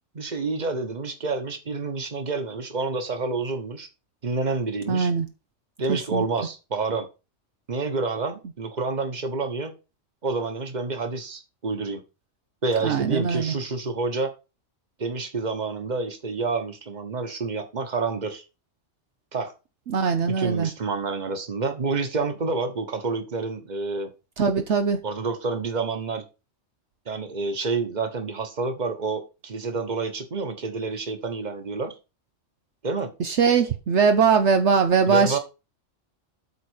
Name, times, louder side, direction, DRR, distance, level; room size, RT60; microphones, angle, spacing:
voice 1, 0.1-3.9 4.2-5.1 5.8-7.1 7.7-9.7 10.2-12.0 12.6-14.3 15.0-18.4 19.3-19.5 20.4-24.1 25.0-26.2 27.1-31.9 32.8-33.1 35.1-35.4, right 4 dB, 35° right, 1.4 m, -28 dB
voice 2, 4.9-5.3 5.9-6.2 12.8-13.5 19.9-20.7 24.4-25.0 33.2-35.4, right 5 dB, 70° right, 1.1 m, -21 dB
8.5 x 4.2 x 6.4 m
omnidirectional pair, 1.3 m